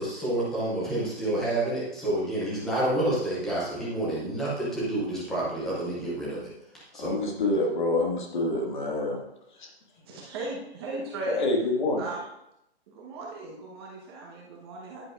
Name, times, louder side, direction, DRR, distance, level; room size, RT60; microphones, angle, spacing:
voice 1, 0.0-6.5 6.9-7.1, right 1 dB, ahead, -7 dB, 0.5 m, -29 dB
voice 2, 7.0-9.2 9.6-9.7 11.3-12.0, left 2 dB, 45° left, 1 dB, 1.9 m, -27 dB
voice 3, 10.0-11.4 12.0-12.2 12.9-15.1, right 2 dB, 25° right, -3 dB, 1.2 m, -37 dB
10.0 x 9.6 x 2.5 m, 0.84 s
hypercardioid pair, 160°, 32 cm